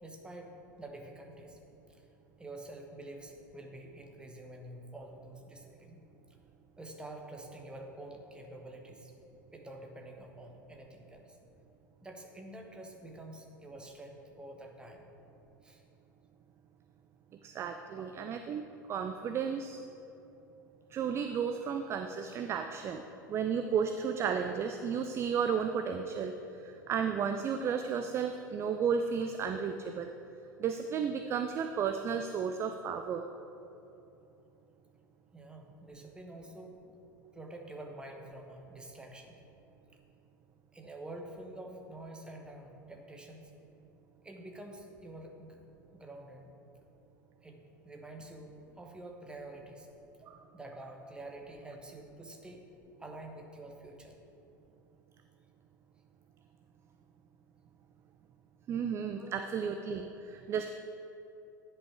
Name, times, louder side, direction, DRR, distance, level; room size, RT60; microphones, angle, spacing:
voice 1, 0.0-1.6 1.9-2.1 2.4-6.0 6.3-6.4 6.8-9.1 9.5-11.4 12.0-15.1 15.6-15.8 18.0-18.1 35.3-36.8 37.3-39.4 40.7-43.5 44.2-45.6 45.9-46.5 47.4-49.9 50.5-52.7 53.0-54.2 59.1-59.6, right 1 dB, 10° right, 2 dB, 1.0 m, -48 dB
voice 2, 17.4-19.8 20.9-23.0 23.3-26.3 26.6-30.1 30.6-33.2 50.2-50.4 58.7-60.7, right 7 dB, 25° right, 7 dB, 0.3 m, -33 dB
9.9 x 5.5 x 4.6 m, 2.9 s
figure-of-eight pair, 85°, 11 cm